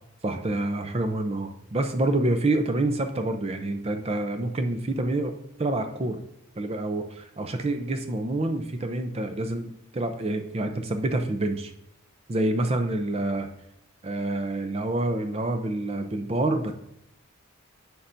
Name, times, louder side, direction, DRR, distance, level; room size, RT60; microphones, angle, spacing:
voice 1, 0.2-5.3 5.6-6.2 6.6-11.7 12.3-13.5 14.0-16.7, right 2 dB, 30° right, 6 dB, 0.5 m, -27 dB
9.8 x 5.8 x 2.6 m, 0.80 s
head